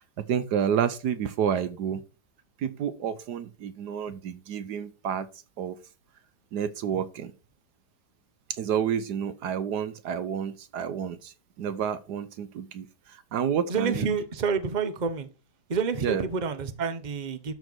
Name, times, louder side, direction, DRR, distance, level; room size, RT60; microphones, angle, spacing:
voice 1, 0.2-2.0 2.6-5.3 5.6-5.8 6.5-7.3 8.5-14.1 16.0-16.2, right 8 dB, 70° right, 1.3 m, -30 dB
voice 2, 13.7-15.3 15.7-17.5, right 5 dB, 30° right, 1.0 m, -28 dB
12.5 x 4.6 x 6.2 m
omnidirectional pair, 1.9 m